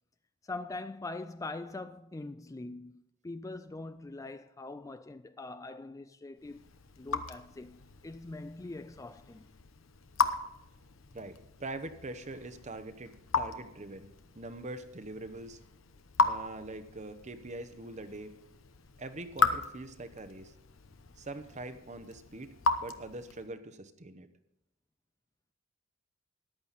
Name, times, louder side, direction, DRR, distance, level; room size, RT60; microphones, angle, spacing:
voice 1, 0.4-6.6 7.0-9.4, left 2 dB, 15° left, 0.3 m, -43 dB
Raindrop / Drip, 6.4-23.6, left 4 dB, 75° left, 0.9 m, -36 dB
voice 2, 11.1-15.6 16.2-18.3 19.0-20.5 21.2-22.5 22.8-24.3, right 2 dB, 35° right, 0.9 m, -43 dB
14.0 x 10.5 x 4.1 m
head